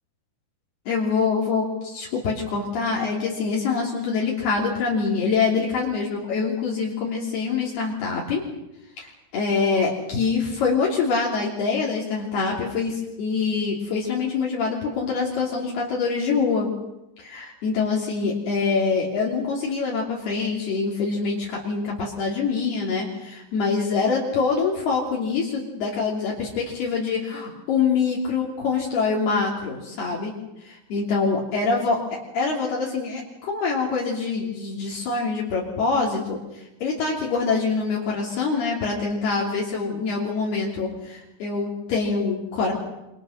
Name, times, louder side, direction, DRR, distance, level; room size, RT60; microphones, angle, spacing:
voice 1, 0.9-8.4 9.0-16.7 17.2-30.3 30.6-42.7, left 4 dB, 65° left, -3 dB, 5.0 m, -25 dB
28.0 x 26.0 x 6.5 m, 0.93 s
omnidirectional pair, 5.0 m